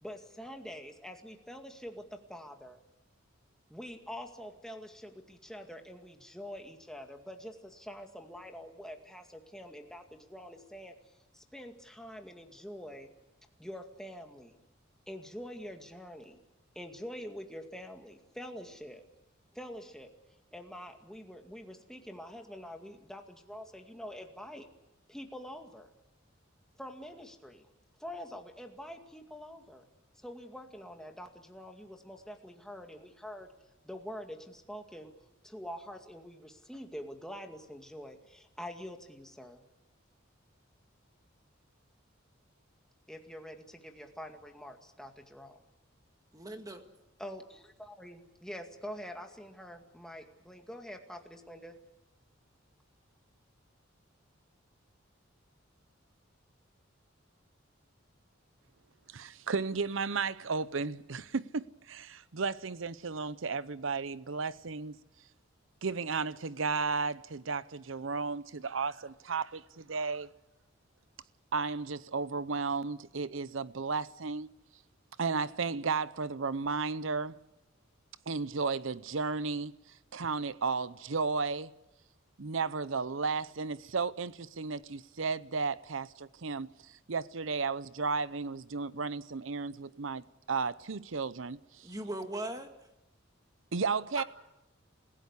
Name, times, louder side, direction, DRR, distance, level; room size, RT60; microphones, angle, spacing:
voice 1, 0.0-2.8 3.7-10.9 11.3-13.1 13.6-14.5 15.1-16.4 16.8-19.0 19.5-20.1 20.5-24.7 25.1-25.9 26.8-27.7 28.0-29.9 30.2-33.5 33.8-35.1 35.4-39.6 43.1-45.6 47.2-51.8, equal, 5° left, 2.1 m, -45 dB
voice 2, 46.3-46.9 91.8-92.7 94.2-94.3, right 1 dB, 20° right, 2.0 m, -38 dB
voice 3, 59.1-64.9 65.8-70.3 71.5-74.5 75.2-77.4 78.3-79.7 80.1-81.7 82.4-86.7 87.1-91.8 93.7-94.2, right 4 dB, 75° right, 0.7 m, -34 dB
27.5 x 16.5 x 8.3 m
head